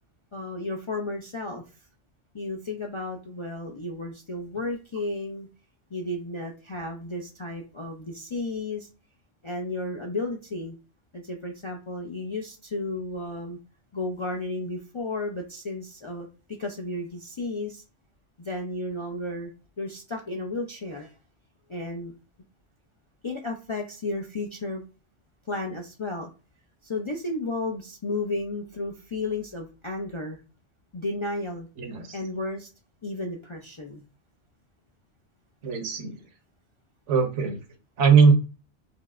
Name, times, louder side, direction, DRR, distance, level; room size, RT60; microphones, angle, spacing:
voice 1, 0.3-1.6 2.3-5.5 5.9-8.9 9.4-10.8 11.1-13.6 13.9-16.3 16.6-17.8 18.4-19.5 19.8-21.1 21.7-22.1 23.2-24.8 25.5-26.3 26.8-30.4 30.9-31.7 32.1-32.7 33.0-34.0, left 2 dB, 50° left, 1 dB, 0.3 m, -33 dB
voice 2, 31.8-32.2 35.6-36.1 37.1-37.6 38.0-38.3, right 5 dB, 85° right, 5 dB, 1.1 m, -20 dB
4.4 x 2.0 x 2.3 m, 0.33 s
omnidirectional pair, 1.2 m